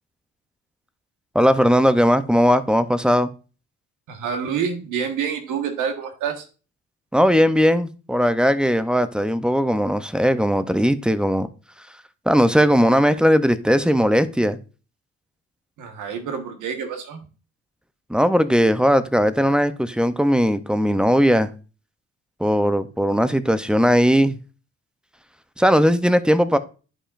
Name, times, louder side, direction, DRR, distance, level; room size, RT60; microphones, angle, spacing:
voice 1, 1.3-3.3 7.1-11.5 12.3-14.6 18.1-21.5 22.4-24.4 25.6-26.6, equal, 5° right, 0.5 m, -18 dB
voice 2, 4.1-6.4 15.8-17.2, right 7 dB, 85° right, 1.4 m, -27 dB
11.5 x 4.9 x 2.5 m
cardioid pair, 90°, 30 cm